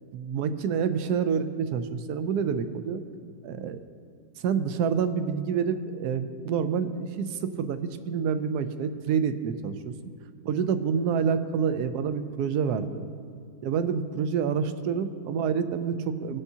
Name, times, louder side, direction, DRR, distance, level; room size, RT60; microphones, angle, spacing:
voice 1, 0.1-3.0 3.4-3.8 4.4-9.9 10.4-13.0 13.6-16.4, right 6 dB, 75° right, 10 dB, 1.1 m, -28 dB
18.5 x 7.1 x 2.8 m, 2.4 s
omnidirectional pair, 1.8 m